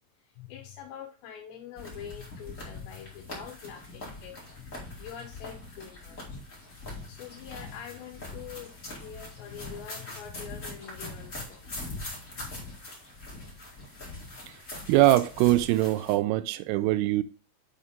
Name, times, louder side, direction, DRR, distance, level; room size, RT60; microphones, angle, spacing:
voice 1, 0.2-6.4 6.7-12.1 12.4-12.8, left 9 dB, 75° left, 2.8 m, -45 dB
sound 1, 1.7-16.2, left 2 dB, 45° left, 1.0 m, -42 dB
voice 2, 14.9-17.2, right 16 dB, 85° right, 3.1 m, -22 dB
7.6 x 4.3 x 5.0 m
omnidirectional pair, 5.8 m